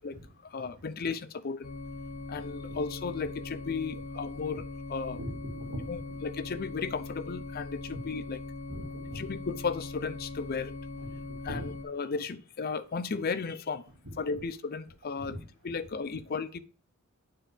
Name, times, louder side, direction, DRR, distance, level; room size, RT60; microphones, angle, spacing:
voice 1, 0.0-1.7 2.3-5.2 5.9-8.4 9.1-10.7 11.4-13.8 14.2-15.4 15.6-16.6, left 5 dB, 45° left, 13 dB, 0.5 m, -35 dB
sound 1, 1.6-11.9, left 3 dB, 70° left, 0.9 m, -41 dB
voice 2, 5.1-5.8 7.9-8.0 8.7-9.3 11.0-11.7 15.2-15.4, equal, 80° right, 0 dB, 2.3 m, -41 dB
9.0 x 4.4 x 3.4 m, 0.41 s
head